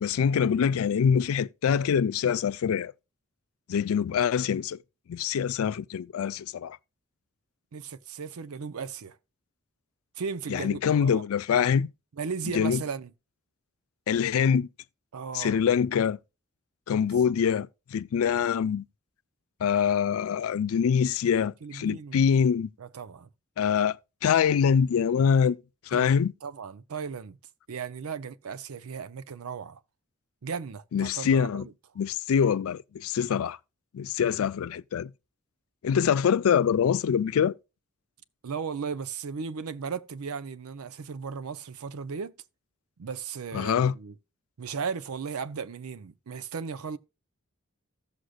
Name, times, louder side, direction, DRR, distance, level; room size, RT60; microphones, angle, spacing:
voice 1, 0.0-2.9 3.7-4.8 5.1-6.8 10.5-11.9 12.5-12.8 14.1-14.7 15.3-16.2 16.9-18.8 19.6-22.7 23.6-24.0 24.2-25.6 25.9-26.3 30.9-31.6 32.0-33.6 33.9-35.1 35.8-37.5 43.5-43.9, left 7 dB, 80° left, 0.3 m, -24 dB
voice 2, 7.7-9.2 10.2-11.2 12.1-13.1 15.1-15.6 21.6-22.2 22.8-23.3 25.9-26.1 26.4-27.4 27.7-29.8 30.4-31.7 38.4-42.3 43.0-44.1 44.6-47.0, right 5 dB, 90° right, 0.5 m, -36 dB
15.5 x 6.4 x 2.3 m
head